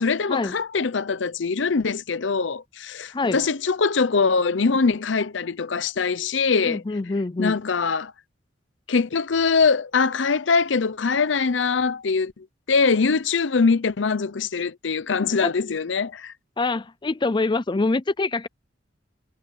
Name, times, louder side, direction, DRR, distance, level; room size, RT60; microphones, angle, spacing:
voice 1, 0.0-6.8 7.4-8.1 8.9-16.3, left 4 dB, 70° left, 0.7 m, -23 dB
voice 2, 3.1-3.4 6.6-7.6 15.4-15.5 16.6-18.5, left 3 dB, 25° left, 0.5 m, -25 dB
head